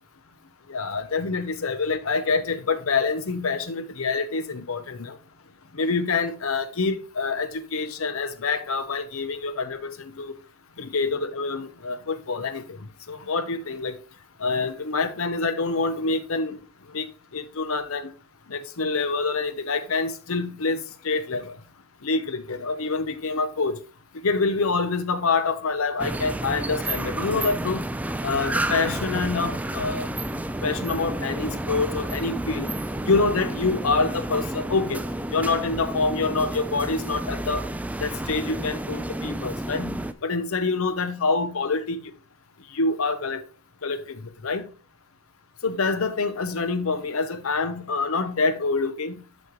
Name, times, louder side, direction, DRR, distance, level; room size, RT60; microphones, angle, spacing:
voice 1, 0.7-5.2 5.7-10.3 10.8-12.8 13.1-14.0 14.4-16.6 16.9-17.1 17.3-18.1 18.5-21.5 22.0-23.8 24.2-27.8 28.2-30.1 30.6-32.7 33.1-35.0 35.3-37.7 38.0-40.0 40.2-42.0 42.7-43.4 43.8-44.7 45.6-49.1, left 4 dB, 75° left, 0.8 m, -26 dB
sound 1, 26.0-40.1, right 1 dB, 5° right, 0.3 m, -30 dB
11.5 x 4.2 x 3.1 m
head